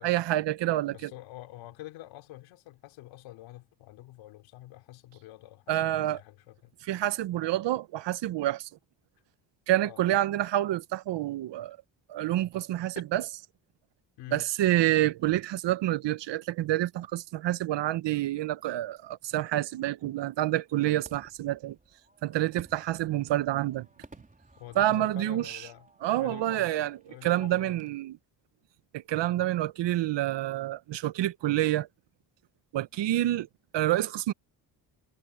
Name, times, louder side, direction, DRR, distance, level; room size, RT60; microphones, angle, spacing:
voice 1, 0.0-1.1 5.7-6.2 6.9-8.7 9.7-11.8 12.1-13.2 14.3-21.8 22.2-23.9 24.8-25.6 26.0-28.2 28.9-31.9 32.7-33.5 33.7-34.3, right 14 dB, 70° right, 1.0 m, -28 dB
voice 2, 0.9-6.7 9.8-10.0 13.0-13.1 14.2-14.5 24.6-25.9 26.2-27.8, left 15 dB, 90° left, 3.7 m, -47 dB
Fireworks, 19.5-27.9, right 2 dB, 20° right, 4.4 m, -57 dB
supercardioid pair, 75°, 44 cm